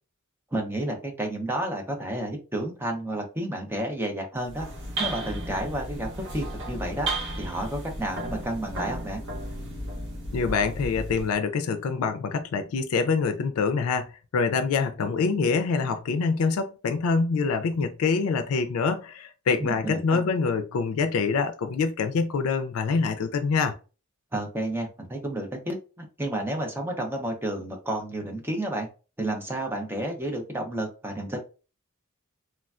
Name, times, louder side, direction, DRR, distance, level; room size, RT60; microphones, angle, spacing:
voice 1, 0.5-4.7 5.0-7.1 7.4-9.2 19.6-20.2 24.3-28.9 29.2-31.4, right 1 dB, 10° right, 0.6 m, -31 dB
sound 1, 4.4-11.3, right 1 dB, 60° right, 0.9 m, -34 dB
voice 2, 10.3-23.7, left 4 dB, 85° left, 0.4 m, -25 dB
3.2 x 2.2 x 2.4 m
head